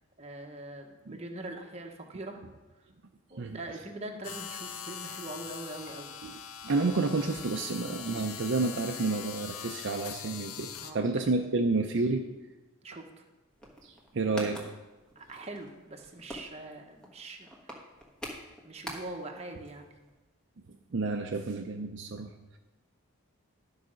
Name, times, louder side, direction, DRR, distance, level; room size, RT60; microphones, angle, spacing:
voice 1, 0.2-2.4 3.3-6.2 10.8-11.1 12.8-13.2 15.1-17.7 18.6-19.9, right 2 dB, 30° right, 3 dB, 1.0 m, -42 dB
sound 1, 4.2-10.9, left 8 dB, 90° left, 0.7 m, -42 dB
voice 2, 6.2-12.2 13.8-14.6 20.7-22.6, right 3 dB, 55° right, 4 dB, 0.6 m, -30 dB
sound 2, 13.5-19.4 19.6-19.7 20.0-20.1, equal, 5° left, 1.3 m, -44 dB
12.0 x 4.9 x 6.3 m, 1.1 s
head